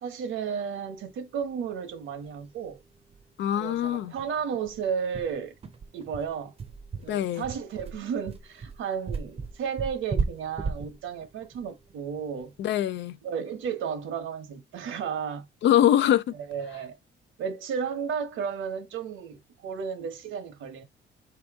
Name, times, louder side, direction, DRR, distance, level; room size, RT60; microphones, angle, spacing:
voice 1, 0.0-2.8 3.6-5.5 5.9-6.5 6.9-12.5 13.2-15.5 16.3-17.0 17.4-20.8, right 7 dB, 75° right, 1.0 m, -33 dB
sound 1, 2.3-2.4 2.7-2.8 3.1-3.2 3.6-3.7 4.2-12.6, right 5 dB, 30° right, 0.6 m, -35 dB
voice 2, 3.4-4.1 7.1-7.4 12.6-13.1 15.6-16.2, left 11 dB, 65° left, 0.4 m, -23 dB
4.2 x 2.9 x 3.5 m
cardioid pair, 130°, 21 cm